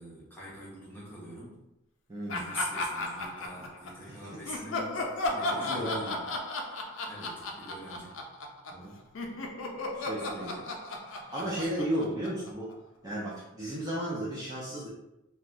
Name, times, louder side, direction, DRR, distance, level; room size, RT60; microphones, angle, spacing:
voice 1, 0.0-1.6 2.3-6.2 7.0-8.2 10.2-10.7 11.4-11.8, equal, 10° left, -7 dB, 0.7 m, -44 dB
voice 2, 2.1-2.4 4.3-4.6 5.5-6.3 8.7-9.0 9.9-10.6 11.1-12.7 13.0-14.9, right 1 dB, 20° right, -7 dB, 0.5 m, -34 dB
Laughter, 2.3-4.0 4.5-8.9 9.1-12.7, left 2 dB, 80° left, 0.4 m, -35 dB
3.1 x 2.2 x 2.5 m, 0.89 s
head